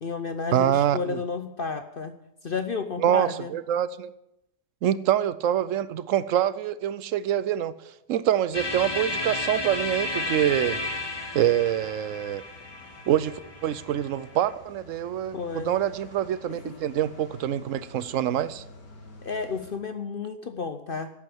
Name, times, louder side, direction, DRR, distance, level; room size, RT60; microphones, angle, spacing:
voice 1, 0.0-2.2 2.4-3.5 15.3-15.7 16.6-16.7 19.2-21.1, left 5 dB, 60° left, 9 dB, 0.5 m, -32 dB
voice 2, 0.5-1.2 3.0-4.1 4.8-7.7 8.1-10.8 11.3-12.4 13.1-18.6, right 11 dB, 65° right, 16 dB, 0.8 m, -25 dB
sound 1, 8.5-19.8, left 1 dB, 75° left, 3.0 m, -50 dB
sound 2, 8.5-14.5, left 2 dB, 15° left, 1.2 m, -33 dB
11.5 x 8.5 x 8.9 m, 0.84 s
omnidirectional pair, 1.8 m